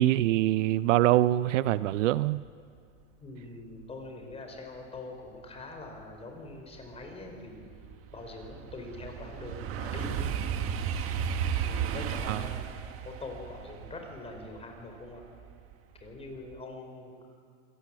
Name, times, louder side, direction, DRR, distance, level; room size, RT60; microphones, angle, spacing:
voice 1, 0.0-2.4 12.3-12.4, right 14 dB, 70° right, 16 dB, 0.7 m, -24 dB
voice 2, 3.2-7.7 8.1-10.3 11.6-12.7 13.0-15.2 16.0-17.2, left 2 dB, 15° left, 3 dB, 4.7 m, -43 dB
sound 1, 6.1-6.2 6.7-15.7 16.1-16.5, right 8 dB, 35° right, 1.5 m, -34 dB
26.5 x 17.5 x 7.7 m, 2.2 s
supercardioid pair, 130°, 39 cm